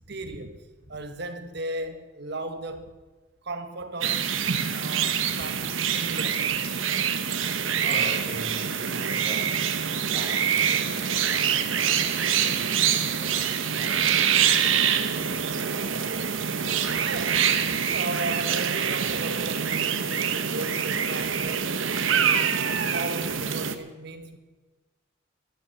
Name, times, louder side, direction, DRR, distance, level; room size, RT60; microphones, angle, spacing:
voice 1, 0.1-2.9 3.4-4.3 4.7-6.4 16.1-16.2 16.9-22.3 22.6-24.4, right 2 dB, 55° right, 1.6 m, -36 dB
sound 1, 4.0-23.7, right 7 dB, 85° right, 1.1 m, -25 dB
voice 2, 7.8-9.6 10.1-14.2, equal, 35° left, 4.3 m, -42 dB
12.0 x 12.0 x 7.8 m
head